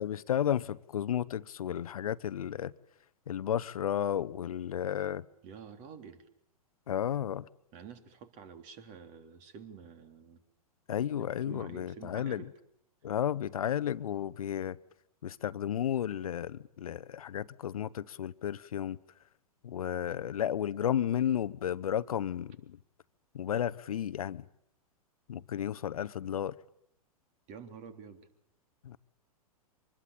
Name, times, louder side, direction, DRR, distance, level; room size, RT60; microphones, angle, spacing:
voice 1, 0.0-2.7 3.3-5.2 6.9-7.5 10.9-12.4 13.0-14.8 15.2-19.0 19.6-22.8 23.3-24.4 25.3-26.6 28.8-29.0, left 10 dB, 70° left, 0.9 m, -33 dB
voice 2, 5.4-6.2 7.7-10.4 11.2-12.5 27.5-28.3, right 6 dB, 40° right, 3.4 m, -49 dB
25.0 x 21.0 x 8.8 m
figure-of-eight pair, 105°, 19 cm